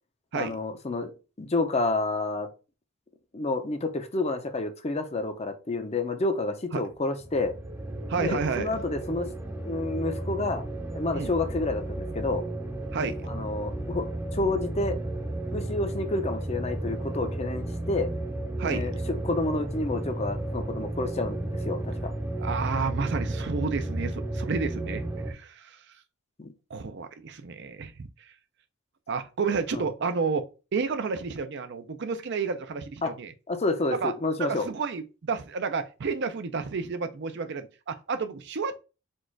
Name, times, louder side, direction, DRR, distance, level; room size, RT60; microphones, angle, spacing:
voice 1, 0.3-1.1 1.4-2.5 3.3-7.5 8.2-9.3 9.6-10.6 10.9-12.4 13.3-14.1 14.3-15.0 15.5-18.1 18.6-22.1 26.4-26.5 29.7-29.8 33.0-33.1 33.5-34.7, left 2 dB, 30° left, 0.6 m, -29 dB
sound 1, 7.2-25.3, right 1 dB, 15° right, 0.7 m, -33 dB
voice 2, 8.1-8.7 11.1-11.3 12.9-13.2 18.6-18.9 22.4-25.8 26.7-28.3 29.1-33.3 33.9-34.1 34.4-38.8, right 5 dB, 55° right, 0.5 m, -31 dB
4.4 x 2.4 x 4.4 m
head